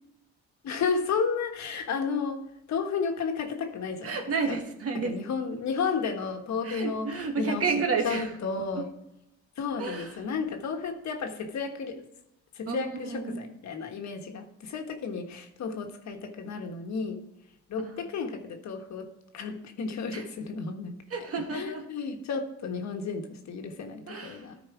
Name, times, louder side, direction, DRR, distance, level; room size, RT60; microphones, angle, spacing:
voice 1, 0.6-2.4 2.7-4.6 5.0-7.6 8.0-8.9 9.6-12.1 12.5-17.3 17.7-21.0 21.5-24.6, left 5 dB, 65° left, 5 dB, 1.4 m, -32 dB
voice 2, 4.0-5.1 6.6-8.3 8.7-8.9 9.8-10.2 12.7-13.5 17.8-18.0 20.1-20.2 21.1-21.9 24.1-24.4, right 4 dB, 50° right, 4 dB, 1.6 m, -31 dB
13.0 x 4.6 x 4.8 m, 0.85 s
cardioid pair, 90°, 30 cm